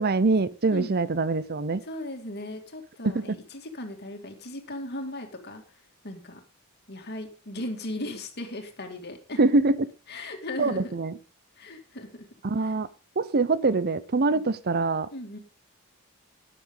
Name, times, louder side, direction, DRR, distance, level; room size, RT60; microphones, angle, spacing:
voice 1, 0.0-1.8 3.0-3.4 9.4-9.9 10.6-11.1 12.4-12.9 13.2-15.1, right 3 dB, 45° right, 17 dB, 0.7 m, -24 dB
voice 2, 1.8-5.6 6.0-6.4 6.9-9.4 10.1-10.9 11.6-12.3 12.6-12.7 14.3-14.4 15.1-15.4, left 1 dB, 50° left, 4 dB, 2.5 m, -37 dB
12.5 x 9.9 x 3.9 m, 0.35 s
head